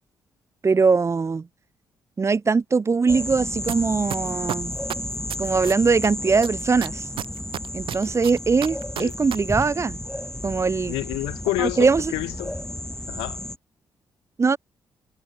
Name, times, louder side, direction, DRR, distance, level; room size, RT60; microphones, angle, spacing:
voice 1, 0.6-1.5 2.2-4.7 5.4-7.0 7.7-10.0 10.4-11.0 11.6-12.1 14.4-14.6, right 4 dB, 30° right, 0.5 m, -21 dB
sound 1, 3.1-13.6, left 1 dB, 5° left, 0.9 m, -32 dB
sound 2, 3.7-3.8 4.1-6.1 6.4-9.4 9.6-9.7, right 11 dB, 65° right, 1.1 m, -30 dB
voice 2, 10.9-12.6 13.1-13.4, left 21 dB, 80° left, 0.6 m, -28 dB
hypercardioid pair, 45°, 9 cm